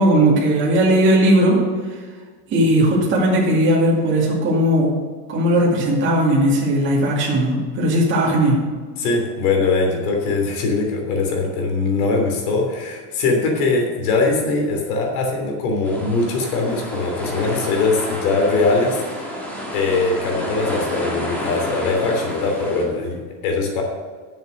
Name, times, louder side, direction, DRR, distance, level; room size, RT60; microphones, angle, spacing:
voice 1, 0.0-1.6 2.5-4.9 5.3-8.6, right 1 dB, 25° right, -4 dB, 2.3 m, -17 dB
voice 2, 9.0-19.0 19.7-23.8, left 3 dB, 70° left, 1 dB, 3.2 m, -21 dB
sound 1, 15.8-22.8, equal, 5° left, 1.7 m, -30 dB
10.0 x 7.3 x 6.4 m, 1.5 s
supercardioid pair, 170°, 47 cm